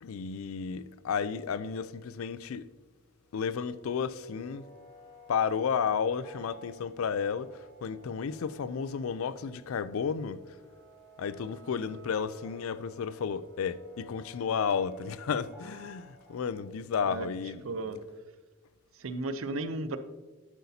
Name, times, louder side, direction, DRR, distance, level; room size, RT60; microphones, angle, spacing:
voice 1, 0.0-2.7 3.3-4.7 5.3-10.4 11.2-17.6, left 6 dB, 85° left, 0.4 m, -32 dB
sound 1, 3.3-16.6, equal, 15° left, 2.2 m, -55 dB
voice 2, 17.6-18.0 18.9-20.0, right 2 dB, 80° right, 0.6 m, -34 dB
10.5 x 8.0 x 2.8 m
head